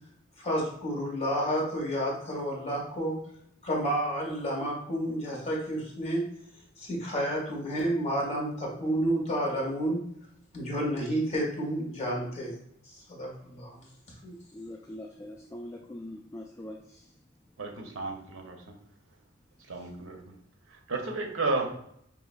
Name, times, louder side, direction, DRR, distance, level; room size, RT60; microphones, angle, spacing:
voice 1, 0.4-3.2 3.6-6.2 6.8-10.0 10.5-12.5 12.9-13.8 14.2-14.3, equal, 35° left, -2 dB, 1.4 m, -30 dB
voice 2, 14.5-17.2 19.6-19.9, left 1 dB, 15° left, 0 dB, 0.3 m, -43 dB
voice 3, 17.6-18.7 19.7-20.3 20.7-21.8, right 3 dB, 80° right, 3 dB, 0.7 m, -33 dB
5.4 x 2.9 x 2.4 m, 0.72 s
head